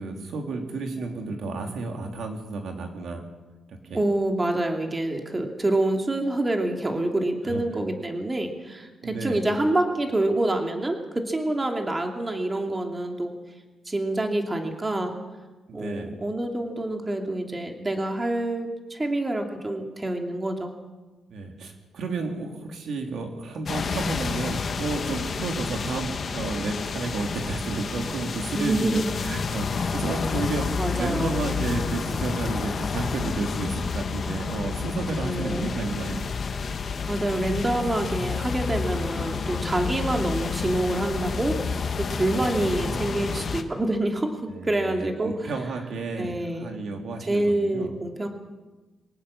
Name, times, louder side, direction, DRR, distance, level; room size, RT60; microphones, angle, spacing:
voice 1, 0.0-3.2 3.7-4.0 7.4-7.6 9.0-9.5 15.7-16.1 21.3-36.3 42.3-43.4 44.5-47.9, right 3 dB, 65° right, 3 dB, 3.7 m, -32 dB
voice 2, 3.9-13.3 13.9-15.1 15.7-20.7 28.5-29.0 30.8-31.4 35.2-35.8 37.1-41.6 42.0-45.3 46.2-46.8 47.3-48.3, right 1 dB, 20° right, 3 dB, 2.7 m, -27 dB
sound 1, 23.7-43.6, left 5 dB, 40° left, 1.5 m, -30 dB
23.0 x 18.5 x 7.3 m, 1.2 s
cardioid pair, 135°, 0 cm